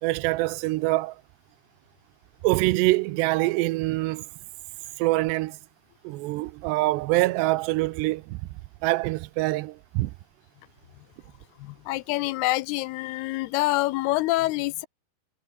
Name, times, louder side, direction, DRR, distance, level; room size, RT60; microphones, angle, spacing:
voice 1, 0.0-1.2 2.4-4.3 5.0-5.6 6.0-8.5 8.8-10.1, right 19 dB, 85° right, 2.9 m, -25 dB
voice 2, 11.6-14.9, left 19 dB, 80° left, 2.5 m, -26 dB
omnidirectional pair, 4.8 m